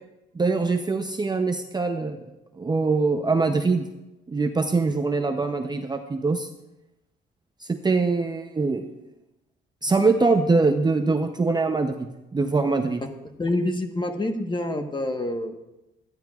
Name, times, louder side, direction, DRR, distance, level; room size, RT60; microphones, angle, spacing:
voice 1, 0.3-2.2 2.6-3.9 4.3-6.5 7.6-8.9 9.8-13.0, right 3 dB, 20° right, 6 dB, 0.6 m, -23 dB
voice 2, 13.4-15.5, left 1 dB, 25° left, 5 dB, 1.2 m, -27 dB
14.5 x 10.0 x 2.4 m, 0.97 s
cardioid pair, 90°, 20 cm